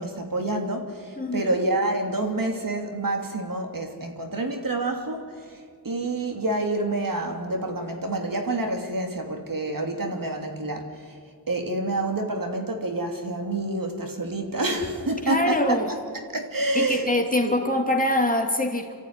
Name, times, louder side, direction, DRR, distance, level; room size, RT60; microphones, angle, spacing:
voice 1, 0.0-5.6 5.8-11.1 11.5-15.8 16.3-17.1 17.4-17.5, right 2 dB, 50° right, 4 dB, 2.9 m, -28 dB
voice 2, 1.2-1.6 15.2-15.9 16.7-18.9, left 1 dB, 20° left, 3 dB, 2.5 m, -24 dB
26.5 x 14.0 x 9.8 m, 2.1 s
wide cardioid pair, 90°, 42 cm